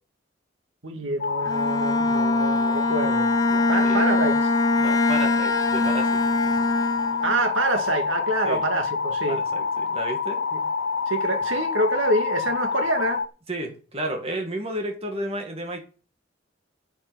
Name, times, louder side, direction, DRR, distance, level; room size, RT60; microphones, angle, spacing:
voice 1, 0.8-3.3 3.7-4.5 7.2-9.4 10.5-10.6 11.1-13.2, right 2 dB, 85° right, 2.0 m, -26 dB
sound 1, 1.2-13.3, left 5 dB, 60° left, 0.7 m, -27 dB
Bowed string instrument, 1.4-7.5, left 2 dB, 20° left, 0.8 m, -23 dB
voice 2, 3.5-4.1 4.8-6.5 8.5-8.6 9.3-10.4 13.5-15.8, right 1 dB, 30° right, 2.1 m, -32 dB
9.8 x 6.1 x 8.3 m
head